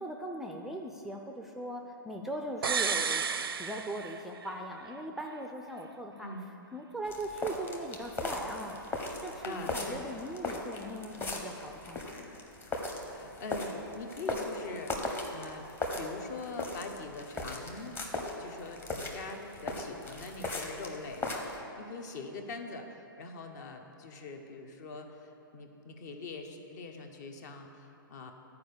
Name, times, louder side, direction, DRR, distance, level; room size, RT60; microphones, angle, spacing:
voice 1, 0.0-3.3 3.6-6.3 6.7-12.3, right 1 dB, ahead, 1 dB, 0.4 m, -40 dB
sound 1, 2.6-4.6 4.9-5.0, right 6 dB, 85° right, 0.5 m, -32 dB
sound 2, 7.1-21.6, left 2 dB, 20° left, 1.0 m, -38 dB
voice 2, 9.4-10.0 13.1-15.7 16.0-18.0 18.4-28.3, left 3 dB, 50° left, 5 dB, 1.0 m, -43 dB
11.0 x 4.8 x 6.7 m, 2.9 s
hypercardioid pair, 130°, 12 cm